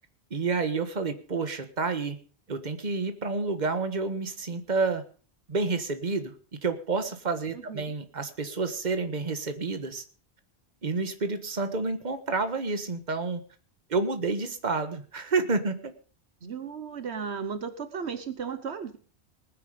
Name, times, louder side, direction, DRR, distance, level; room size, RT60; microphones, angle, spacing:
voice 1, 0.3-2.2 2.5-5.0 5.5-10.0 10.8-13.4 13.9-15.9, right 4 dB, 45° right, 8 dB, 1.6 m, -29 dB
voice 2, 7.5-7.9 16.4-19.0, right 6 dB, 80° right, 10 dB, 1.4 m, -35 dB
20.0 x 9.6 x 5.1 m, 0.40 s
omnidirectional pair, 1.1 m